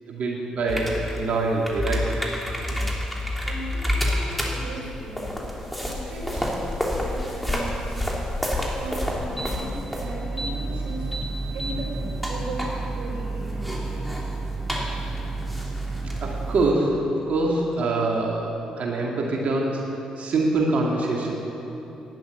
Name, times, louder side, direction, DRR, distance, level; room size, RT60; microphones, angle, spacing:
voice 1, 0.1-2.0 16.2-19.8 20.2-21.3, right 2 dB, 65° right, -1 dB, 2.2 m, -24 dB
sound 1, 0.7-16.7, equal, ahead, 3.2 m, -29 dB
voice 2, 3.2-8.0 8.8-11.1 11.5-14.2, right 1 dB, 80° right, -3 dB, 4.4 m, -38 dB
12.0 x 10.5 x 9.2 m, 3.0 s
supercardioid pair, 50°, 2 cm